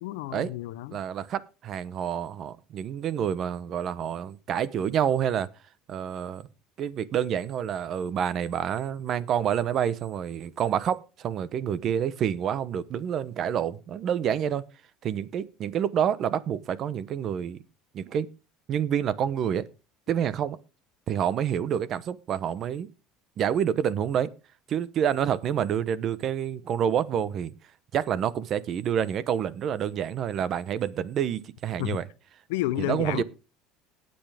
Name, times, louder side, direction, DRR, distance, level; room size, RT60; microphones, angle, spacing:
voice 1, 0.0-1.0 31.8-32.0 32.5-33.2, left 16 dB, 90° left, 0.6 m, -31 dB
voice 2, 0.9-5.5 5.9-6.5 6.8-14.6 15.0-17.6 17.9-18.3 18.7-19.6 20.1-20.6 21.1-22.9 23.4-24.3 24.7-27.5 27.9-32.1 32.8-33.2, right 9 dB, 40° right, 0.9 m, -28 dB
18.5 x 7.9 x 3.5 m
cardioid pair, 135°, 0 cm